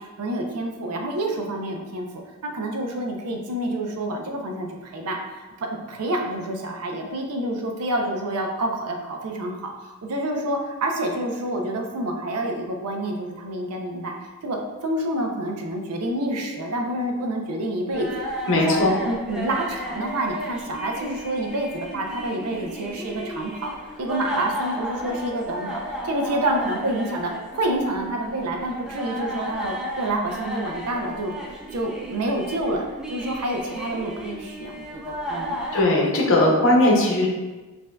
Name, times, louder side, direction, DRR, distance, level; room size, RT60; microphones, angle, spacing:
voice 1, 0.0-2.1 2.4-5.2 5.6-18.2 18.5-18.8 19.0-23.7 24.0-31.3 31.7-35.6, right 1 dB, 85° right, 2 dB, 0.6 m, -28 dB
sound 1, 17.9-35.8, equal, 5° right, 0.5 m, -34 dB
voice 2, 18.5-18.9 35.7-37.3, left 1 dB, 60° left, -1 dB, 0.8 m, -18 dB
5.3 x 2.6 x 2.2 m, 1.2 s
head